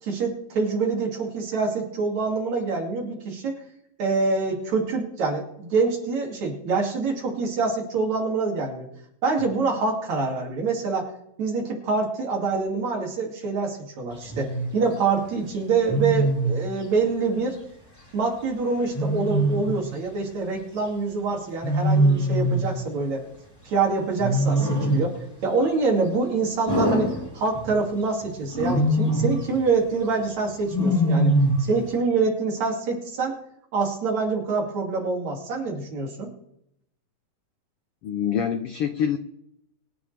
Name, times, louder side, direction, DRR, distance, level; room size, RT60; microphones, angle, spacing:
voice 1, 0.0-3.6 4.0-8.9 9.2-11.1 11.4-17.6 18.1-23.2 23.6-31.3 31.6-33.4 33.7-36.3, right 4 dB, 60° right, 0 dB, 3.9 m, -25 dB
Wild animals, 14.3-14.7 15.9-16.6 18.9-19.9 21.6-22.7 24.2-25.1 26.7-27.8 28.5-29.4 30.7-31.7, right 1 dB, 5° left, 3.3 m, -22 dB
voice 2, 38.0-39.2, left 8 dB, 75° left, 8 dB, 1.3 m, -25 dB
24.5 x 10.5 x 3.5 m, 0.77 s
omnidirectional pair, 3.7 m